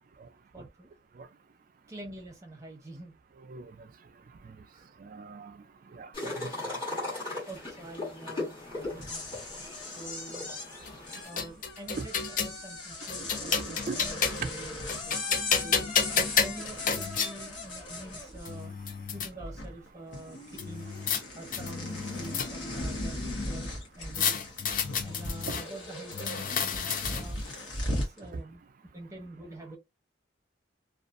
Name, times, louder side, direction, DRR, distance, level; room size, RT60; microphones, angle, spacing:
voice 1, 0.5-0.9 1.9-3.1 4.7-4.9 7.3-9.2 9.9-10.4 11.2-12.1 12.4-15.9 16.4-18.7 19.1-20.9 21.3-23.7 24.0-24.4 25.0-27.4 27.9-28.6 28.9-29.8, right 2 dB, 15° right, 0.7 m, -46 dB
voice 2, 5.0-5.5 5.9-6.8 12.0-12.1 13.4-14.0 14.4-14.5 16.2-16.3 24.9-25.0, right 4 dB, 45° right, 0.4 m, -39 dB
sound 1, 6.1-11.2, left 2 dB, 25° left, 1.3 m, -38 dB
sound 2, 8.8-18.9 19.2-19.9 20.1-28.2, left 2 dB, 75° left, 1.0 m, -38 dB
sound 3, 10.9-12.6 13.1-14.5 14.9-17.3 18.1-18.2 18.5-19.3 20.6-21.2 21.5-22.8 24.1-25.6 26.1-27.4, left 6 dB, 45° left, 0.4 m, -30 dB
2.5 x 2.4 x 2.4 m
head